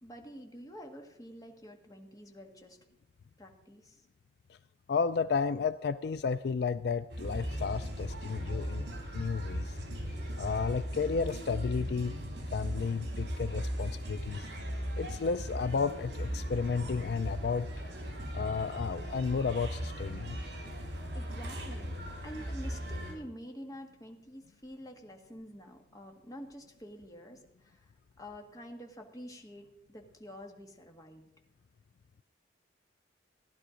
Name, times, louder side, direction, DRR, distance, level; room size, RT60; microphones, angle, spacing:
voice 1, 0.0-2.8 3.4-4.0 21.1-22.0 22.2-27.9 28.2-31.3, equal, 20° left, 2 dB, 1.7 m, -48 dB
voice 2, 4.9-9.8 10.4-12.1 12.5-14.5 15.0-17.7 18.3-20.4, left 5 dB, 60° left, 12 dB, 0.4 m, -32 dB
sound 1, 7.1-23.1, equal, 70° right, 3.4 m, -38 dB
16.0 x 11.0 x 5.1 m, 0.86 s
head